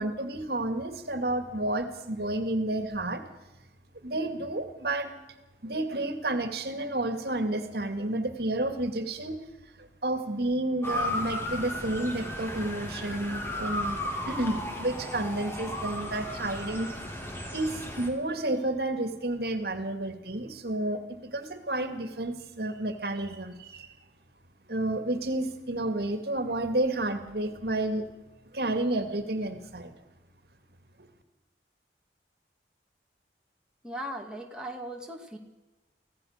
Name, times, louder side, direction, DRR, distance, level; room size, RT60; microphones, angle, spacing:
voice 1, 0.0-3.2 4.0-5.1 5.6-9.4 9.8-16.9 17.5-23.9 24.7-28.1 28.5-29.9 31.0-31.1, right 1 dB, 65° right, 8 dB, 2.2 m, -31 dB
Motor vehicle (road) / Siren, 10.8-18.1, left 1 dB, 15° left, 3.4 m, -34 dB
voice 2, 33.8-35.4, right 1 dB, 5° right, 1 dB, 2.4 m, -38 dB
25.0 x 17.0 x 6.6 m, 1.1 s
head